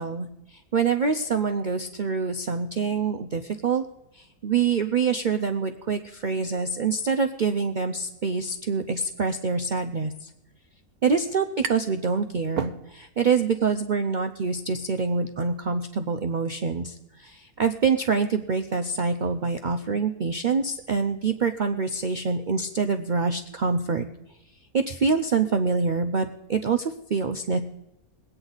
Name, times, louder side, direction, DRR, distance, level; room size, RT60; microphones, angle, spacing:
voice 1, 0.0-3.8 4.1-10.3 11.0-24.1 24.7-27.6, right 5 dB, 65° right, 5 dB, 0.4 m, -26 dB
sound 1, 11.0-12.0 12.4-13.3, right 7 dB, 80° right, 1.2 m, -34 dB
22.0 x 8.9 x 4.0 m, 0.90 s
omnidirectional pair, 1.5 m